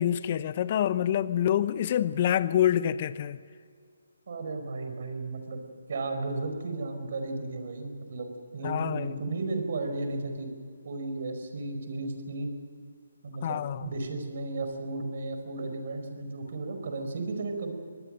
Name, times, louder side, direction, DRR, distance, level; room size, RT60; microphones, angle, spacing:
voice 1, 0.0-3.4 8.6-9.2 13.4-13.9, left 10 dB, 40° left, 0.8 m, -26 dB
voice 2, 4.3-5.6 5.9-10.5 10.8-12.5 13.2-17.7, right 2 dB, 55° right, 4.8 m, -34 dB
25.0 x 19.0 x 6.5 m
figure-of-eight pair, 150°, 0 cm